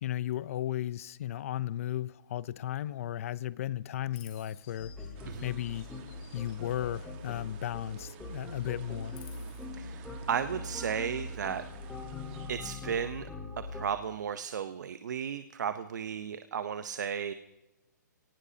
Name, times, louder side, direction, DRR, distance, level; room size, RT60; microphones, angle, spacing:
voice 1, 0.0-4.9 5.4-5.9 6.3-9.2, left 12 dB, 45° left, 0.6 m, -35 dB
Chirp tweet, 4.1-8.1 8.4-9.6, left 10 dB, 25° left, 2.3 m, -58 dB
sound 1, 4.8-13.8, left 2 dB, 5° left, 4.2 m, -42 dB
sound 2, 5.1-12.5, right 9 dB, 30° right, 1.5 m, -53 dB
voice 2, 9.8-11.6 12.5-13.3 13.6-17.3, right 7 dB, 65° right, 0.8 m, -34 dB
27.5 x 18.5 x 2.8 m
hypercardioid pair, 155°, 10 cm